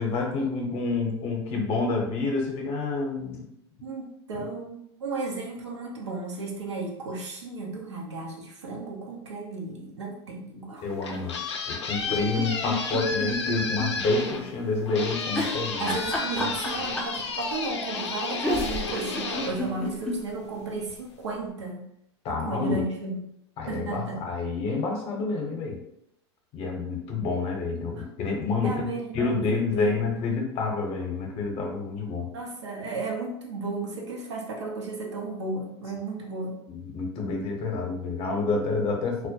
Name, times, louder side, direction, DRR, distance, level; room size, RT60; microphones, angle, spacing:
voice 1, 0.0-3.5 4.3-4.4 10.8-11.4 11.7-16.0 16.4-16.5 22.2-22.8 23.6-25.8 26.5-28.9 29.1-32.3 36.7-39.3, left 3 dB, 40° left, 1 dB, 0.7 m, -28 dB
voice 2, 3.8-10.9 15.8-21.9 22.3-23.3 23.7-24.2 28.0-28.1 28.6-30.0 32.3-36.6, right 3 dB, 85° right, -1 dB, 0.6 m, -34 dB
sound 1, 10.8-20.4, left 4 dB, 80° left, 0.4 m, -33 dB
sound 2, 12.0-13.9 14.2-14.3 15.3-17.2 18.1-18.2 18.4-20.2 20.6-20.7 20.9-21.0, left 1 dB, 5° left, 0.5 m, -30 dB
2.1 x 2.1 x 2.7 m, 0.76 s
hypercardioid pair, 90°, 14 cm